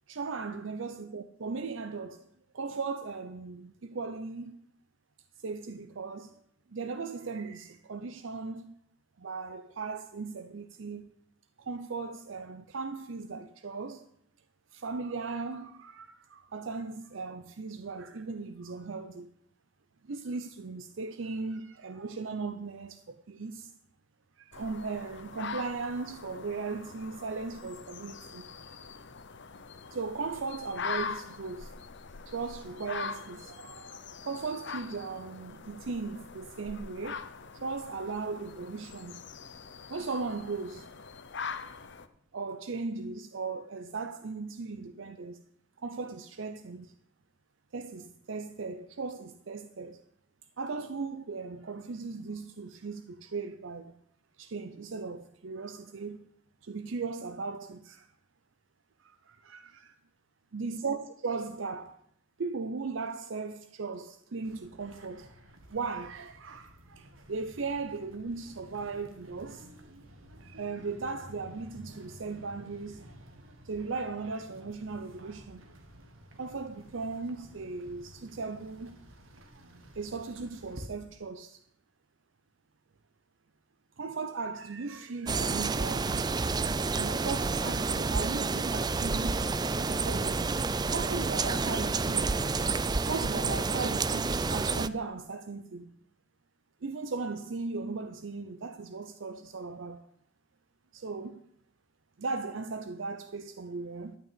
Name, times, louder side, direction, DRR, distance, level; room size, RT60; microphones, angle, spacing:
voice 1, 0.1-2.2 2.5-4.6 5.4-6.4 6.7-8.8 9.2-11.1 11.6-14.1 14.7-19.3 20.1-23.7 24.4-28.5 29.9-31.7 32.3-37.2 37.5-39.2 39.9-40.9 42.3-45.4 45.8-46.9 47.7-50.0 50.6-54.0 54.4-56.2 56.6-58.1 59.0-59.9 60.5-62.0 62.4-65.3 65.7-69.7 70.4-73.1 73.6-75.6 76.4-79.0 80.0-81.6 84.0-86.4 86.9-89.5 89.8-90.6 90.9-92.3 93.0-95.9 96.8-100.1 100.9-101.4 102.2-104.2, right 4 dB, 70° right, 0.6 m, -37 dB
sound 1, 24.5-42.1, left 5 dB, 65° left, 0.8 m, -43 dB
sound 2, 64.4-80.9, equal, 90° right, 1.7 m, -52 dB
sound 3, 85.3-94.9, right 4 dB, 20° right, 0.4 m, -29 dB
12.0 x 6.1 x 9.0 m
head